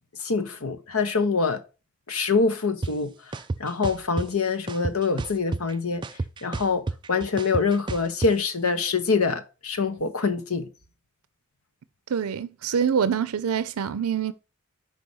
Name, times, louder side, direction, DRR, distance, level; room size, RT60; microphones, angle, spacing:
voice 1, 0.2-1.6 2.1-3.1 3.6-6.0 6.4-10.7, left 4 dB, 85° left, 1.1 m, -25 dB
sound 1, 2.8-2.9 3.3-4.3 4.7-5.7 6.0-8.3, right 3 dB, 20° right, 0.3 m, -30 dB
voice 2, 12.1-14.3, right 7 dB, 90° right, 0.5 m, -25 dB
5.4 x 5.1 x 6.2 m
head